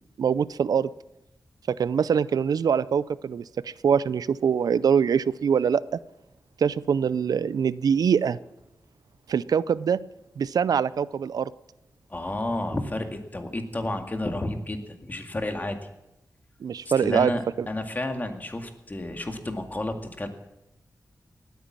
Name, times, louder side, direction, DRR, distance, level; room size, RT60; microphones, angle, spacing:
voice 1, 0.2-0.9 1.7-5.8 6.6-8.4 9.3-10.0 10.4-11.5 16.6-17.3, right 7 dB, 85° right, 18 dB, 0.4 m, -23 dB
voice 2, 12.1-15.8 17.0-20.3, left 1 dB, 30° left, 5 dB, 2.1 m, -31 dB
19.0 x 9.2 x 7.4 m, 0.91 s
wide cardioid pair, 85°, 6 cm